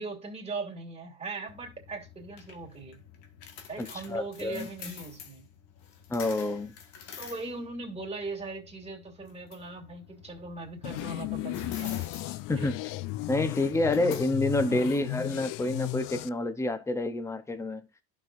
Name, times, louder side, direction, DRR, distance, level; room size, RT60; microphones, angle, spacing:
voice 1, 0.0-3.0 3.7-5.5 7.2-11.9 12.6-12.7 14.7-14.9, right 3 dB, 15° right, 2.9 m, -39 dB
sound 1, 1.5-16.2, left 8 dB, 80° left, 1.8 m, -47 dB
voice 2, 3.8-4.7 6.1-6.7 12.5-12.8 13.3-17.8, left 2 dB, 10° left, 0.9 m, -28 dB
sound 2, 10.8-16.3, left 19 dB, 60° left, 0.5 m, -35 dB
11.5 x 6.2 x 2.6 m
supercardioid pair, 110°, 37 cm